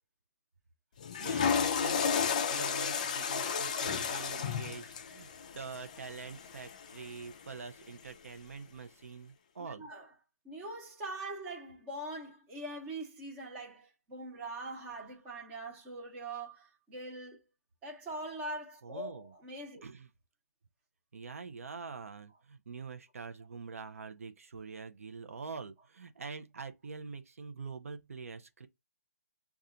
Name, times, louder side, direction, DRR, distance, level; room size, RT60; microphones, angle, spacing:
Water / Toilet flush, 1.0-7.2, left 6 dB, 30° left, 0.4 m, -33 dB
voice 1, 1.2-5.3 5.5-9.9 18.8-19.3 19.8-20.1 21.1-28.7, right 5 dB, 60° right, 0.6 m, -45 dB
voice 2, 9.6-10.1 10.4-17.4 17.8-19.8, right 1 dB, 10° right, 0.9 m, -42 dB
5.5 x 2.4 x 3.8 m
hypercardioid pair, 170°, 8 cm